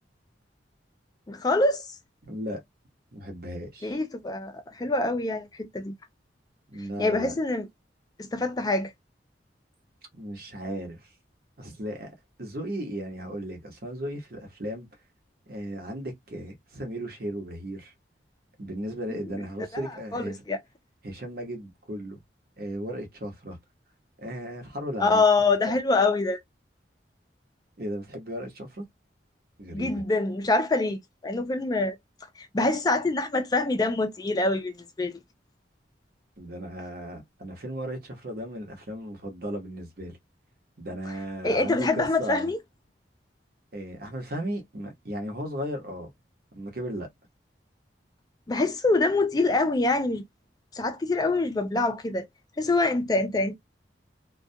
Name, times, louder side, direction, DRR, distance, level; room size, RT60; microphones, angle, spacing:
voice 1, 1.3-1.9 3.8-5.5 5.7-5.9 7.0-7.7 8.3-8.9 20.1-20.6 25.0-26.4 29.7-32.0 32.4-35.1 41.4-42.6 48.5-50.2 50.7-52.3 52.6-53.5, left 3 dB, 20° left, 0.4 m, -25 dB
voice 2, 2.2-2.6 3.1-4.0 6.7-7.3 10.1-11.1 11.6-14.9 15.5-17.9 18.6-20.4 21.0-22.2 22.6-23.6 24.2-25.2 25.7-25.8 27.8-28.8 29.6-30.0 36.4-40.2 40.8-42.5 43.7-46.1 46.5-47.1, equal, 55° right, 1.0 m, -36 dB
2.3 x 2.2 x 2.6 m
head